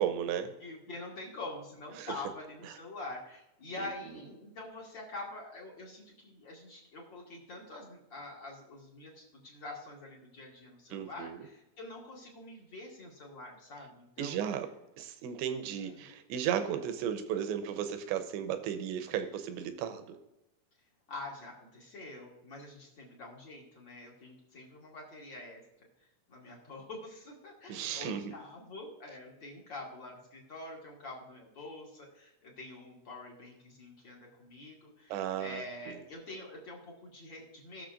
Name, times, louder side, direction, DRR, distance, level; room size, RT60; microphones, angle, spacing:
voice 1, 0.0-0.5 2.0-2.1 3.8-3.9 10.9-11.4 14.2-14.7 15.0-20.0 27.7-28.2 35.1-36.0, right 9 dB, 80° right, 8 dB, 3.0 m, -34 dB
voice 2, 0.6-14.4 15.8-16.0 21.1-25.6 26.3-37.8, left 2 dB, 45° left, -3 dB, 1.5 m, -46 dB
20.0 x 6.7 x 2.5 m, 0.92 s
omnidirectional pair, 5.3 m